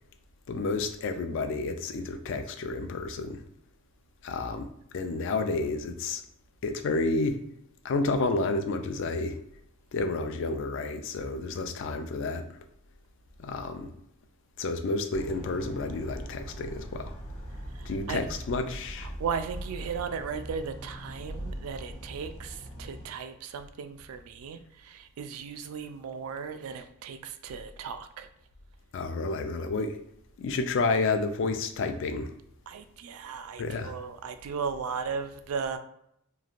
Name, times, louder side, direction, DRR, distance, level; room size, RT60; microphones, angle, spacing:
voice 1, 0.5-3.4 4.2-4.7 4.9-6.2 6.6-7.4 7.8-9.4 9.9-12.5 13.4-13.9 14.6-17.1 17.9-19.1 28.9-30.0 30.4-32.3 33.6-33.9, left 3 dB, 55° left, 7 dB, 0.3 m, -30 dB
sound 1, 15.1-23.1, right 1 dB, 85° left, 0.9 m, -41 dB
voice 2, 17.7-18.3 19.0-28.3 32.7-35.8, right 6 dB, 75° right, 9 dB, 0.3 m, -36 dB
3.1 x 2.4 x 2.4 m, 0.75 s
head